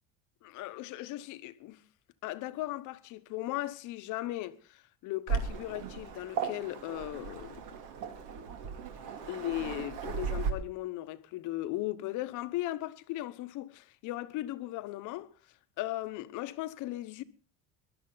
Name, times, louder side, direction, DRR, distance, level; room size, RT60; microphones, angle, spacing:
voice 1, 0.4-1.8 2.2-7.6 9.3-15.3 15.8-17.2, left 16 dB, 65° left, 1.1 m, -37 dB
Waves surf, 5.3-10.5, right 6 dB, 70° right, 2.7 m, -36 dB
22.0 x 12.0 x 4.0 m
cardioid pair, 140°, 33 cm